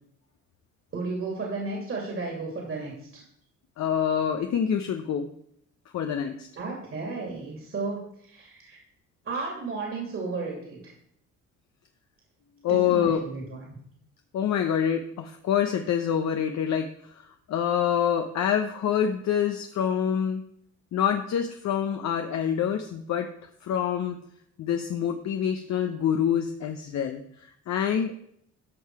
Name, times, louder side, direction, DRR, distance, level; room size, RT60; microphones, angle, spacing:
voice 1, 0.9-3.2 6.6-8.8 9.2-10.9 12.7-13.8, right 3 dB, 45° right, -1 dB, 2.7 m, -34 dB
voice 2, 3.8-5.3 5.9-6.5 12.6-13.2 14.3-16.9 17.5-20.4 20.9-23.3 23.6-24.2 24.6-27.2 27.7-28.1, left 8 dB, 65° left, 5 dB, 0.8 m, -26 dB
12.5 x 5.6 x 4.7 m, 0.70 s
cardioid pair, 90°, 30 cm